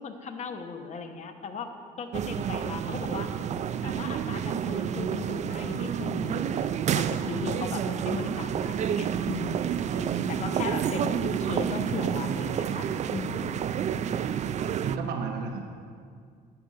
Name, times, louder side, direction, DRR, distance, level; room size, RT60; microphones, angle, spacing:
voice 1, 0.0-3.4 3.8-9.7 10.4-13.6, left 5 dB, 45° left, 6 dB, 1.0 m, -37 dB
sound 1, 2.1-15.0, right 8 dB, 45° right, 0.4 m, -29 dB
voice 2, 9.9-10.3 14.8-15.6, right 5 dB, 70° right, 3 dB, 0.9 m, -33 dB
10.5 x 6.9 x 6.6 m, 2.2 s
cardioid pair, 110°, 17 cm